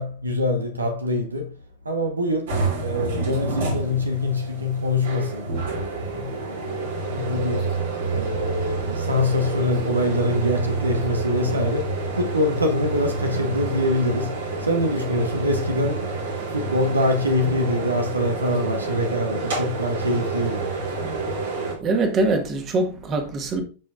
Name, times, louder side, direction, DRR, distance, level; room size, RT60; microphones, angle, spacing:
voice 1, 0.0-1.6 1.8-7.7 8.1-16.1 16.5-20.7, left 1 dB, 80° right, 1.1 m, -25 dB
sound 1, 2.5-21.7, right 3 dB, 60° right, 2.8 m, -28 dB
voice 2, 21.8-23.6, right 2 dB, 30° right, 1.7 m, -23 dB
13.0 x 5.1 x 2.5 m
figure-of-eight pair, 90°, 0 cm